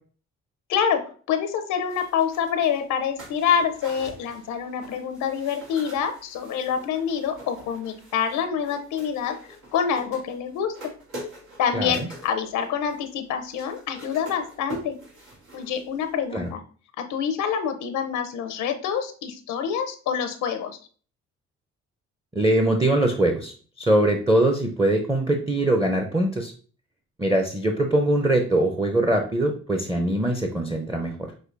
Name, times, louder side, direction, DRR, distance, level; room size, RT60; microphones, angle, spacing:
voice 1, 0.7-9.4 9.7-10.8 11.6-15.0 15.5-16.6 17.0-20.8, left 7 dB, 85° left, 7 dB, 0.6 m, -26 dB
sound 1, 1.9-16.2 16.4-16.5, right 1 dB, 90° right, 1.9 m, -44 dB
voice 2, 11.7-12.1 16.3-16.5 22.3-26.5 27.2-31.1, right 1 dB, 10° right, 3 dB, 0.6 m, -22 dB
6.3 x 2.7 x 2.5 m, 0.41 s
cardioid pair, 90°, 30 cm